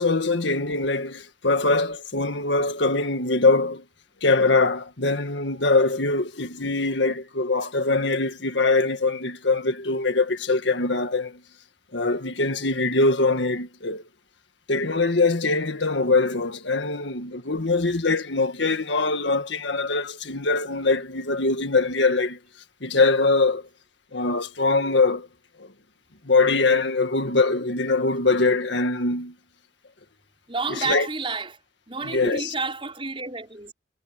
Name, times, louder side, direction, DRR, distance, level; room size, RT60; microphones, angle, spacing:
voice 1, 0.0-3.8 4.2-11.4 11.9-14.0 14.7-22.4 22.8-23.7 24.1-25.3 25.6-25.7 26.2-29.3 30.7-31.1 32.0-32.5, left 3 dB, 75° left, 1.8 m, -23 dB
voice 2, 30.5-31.6 31.9-33.7, right 3 dB, 30° right, 5.4 m, -30 dB
head